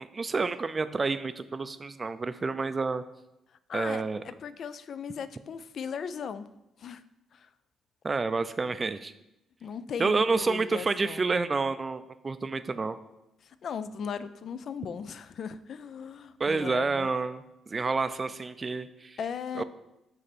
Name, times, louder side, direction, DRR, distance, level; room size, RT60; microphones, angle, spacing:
voice 1, 0.0-3.0 3.7-4.2 8.0-9.1 10.0-13.0 16.4-19.2 19.6-19.7, right 4 dB, 30° right, 12 dB, 0.4 m, -29 dB
voice 2, 3.7-6.5 6.8-7.0 7.3-7.5 9.6-11.2 13.4-17.1 17.8-17.9 19.2-19.6, left 7 dB, 60° left, 13 dB, 0.3 m, -37 dB
8.0 x 3.4 x 4.2 m, 0.90 s
cardioid pair, 90°, 0 cm